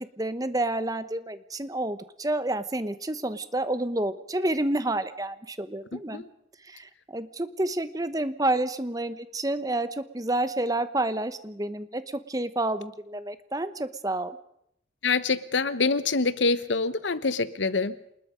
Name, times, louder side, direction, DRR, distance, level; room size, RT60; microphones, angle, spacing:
voice 1, 0.2-6.2 6.6-12.0 12.3-14.3, right 1 dB, 20° right, 12 dB, 1.0 m, -29 dB
voice 2, 5.9-6.3 15.0-17.9, left 4 dB, 80° left, 15 dB, 1.1 m, -26 dB
27.5 x 20.5 x 5.2 m, 0.75 s
head